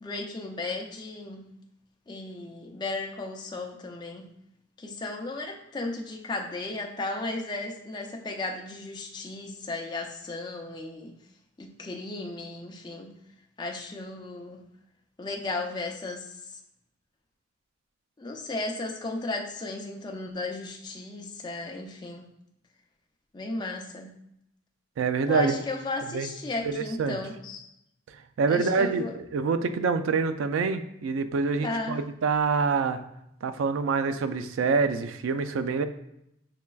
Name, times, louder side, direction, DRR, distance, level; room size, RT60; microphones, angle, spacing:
voice 1, 0.0-1.5 2.1-4.3 4.8-11.2 11.6-13.2 13.6-14.7 15.2-16.6 18.2-22.3 23.3-24.2 25.3-27.6 28.5-29.1 31.6-32.0, left 2 dB, 20° left, 1 dB, 0.4 m, -35 dB
voice 2, 25.0-25.5 26.1-26.3 26.6-27.2 28.4-33.0 33.4-35.8, right 4 dB, 90° right, 10 dB, 0.3 m, -26 dB
5.7 x 3.1 x 2.3 m, 0.79 s
head